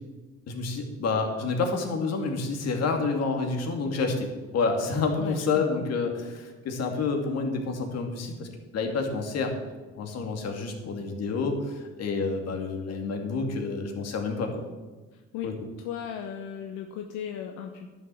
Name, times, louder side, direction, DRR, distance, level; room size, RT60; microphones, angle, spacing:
voice 1, 0.5-8.5 8.7-9.5 10.0-14.6 15.4-15.5, left 4 dB, 60° left, 4 dB, 2.5 m, -29 dB
voice 2, 5.2-5.9 15.1-15.5 15.8-17.9, left 8 dB, 85° left, 5 dB, 1.1 m, -37 dB
11.0 x 7.5 x 7.6 m, 1.3 s
cardioid pair, 100°, 29 cm